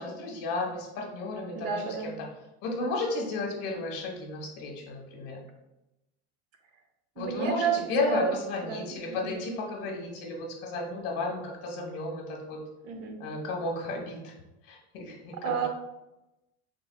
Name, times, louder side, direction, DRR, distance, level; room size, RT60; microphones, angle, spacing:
voice 1, 0.0-2.3 2.6-5.4 7.2-12.6 13.2-14.3 14.7-15.7, left 2 dB, 50° left, 0 dB, 1.1 m, -33 dB
voice 2, 1.5-2.1 7.2-8.3 8.6-9.4 12.8-13.2 15.4-15.7, right 6 dB, 65° right, 4 dB, 0.7 m, -31 dB
4.9 x 3.3 x 2.2 m, 0.95 s
cardioid pair, 160°, 31 cm